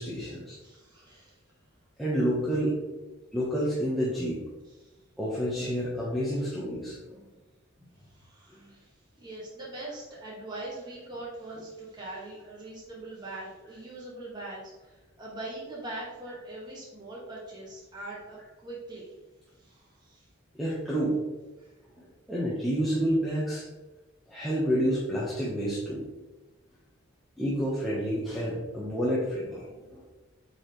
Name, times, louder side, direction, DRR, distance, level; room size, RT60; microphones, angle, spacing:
voice 1, 0.0-0.6 2.0-2.8 3.3-4.4 5.2-7.2 8.6-8.7 20.6-21.2 22.0-23.7 24.3-26.1 27.4-30.0, equal, ahead, -9 dB, 1.2 m, -29 dB
voice 2, 0.6-1.4 4.8-4.9 6.4-6.5 8.0-19.1 19.6-20.3 21.6-21.7, right 2 dB, 20° right, -6 dB, 1.8 m, -42 dB
8.4 x 4.8 x 3.2 m, 1.1 s
head